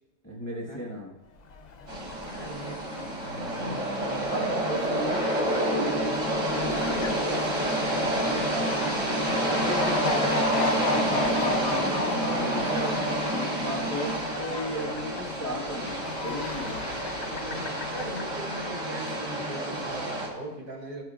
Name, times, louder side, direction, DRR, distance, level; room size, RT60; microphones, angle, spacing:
voice 1, 0.2-1.1 4.3-5.2 9.4-11.6 12.2-17.0, equal, 10° left, -2 dB, 0.9 m, -36 dB
Fowl, 1.4-18.8, left 5 dB, 85° left, 0.3 m, -35 dB
sound 1, 1.9-20.3, right 1 dB, 90° right, 2.6 m, -29 dB
voice 2, 2.4-2.9 3.4-3.9 4.3-4.7 5.8-6.1 6.8-9.6 11.9-13.2 17.3-21.0, right 1 dB, 70° right, -3 dB, 3.5 m, -40 dB
15.0 x 9.1 x 2.4 m, 1.1 s
omnidirectional pair, 1.7 m